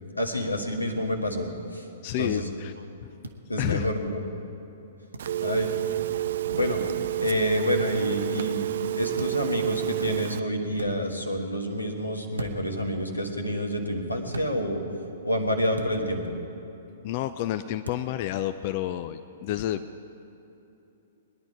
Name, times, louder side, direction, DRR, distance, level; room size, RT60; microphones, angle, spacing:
voice 1, 0.2-1.9 2.2-2.5 3.5-4.2 5.4-5.7 6.5-6.8 7.2-8.7 8.9-14.8 15.2-16.4, equal, 90° left, 3 dB, 1.6 m, -28 dB
voice 2, 2.0-2.7 3.6-3.9 17.0-19.8, left 13 dB, 40° left, 10 dB, 0.4 m, -29 dB
sound 1, 3.2-3.4 5.1-5.3 7.2-7.4 9.2-9.5 10.7-10.9 12.3-12.8 14.3-14.5 15.7-16.0 17.8-18.1, right 1 dB, 80° right, 1.0 m, -37 dB
Telephone, 5.2-10.4, right 14 dB, 55° right, 0.3 m, -29 dB
21.0 x 10.5 x 4.9 m, 2.9 s
figure-of-eight pair, 110°, 0 cm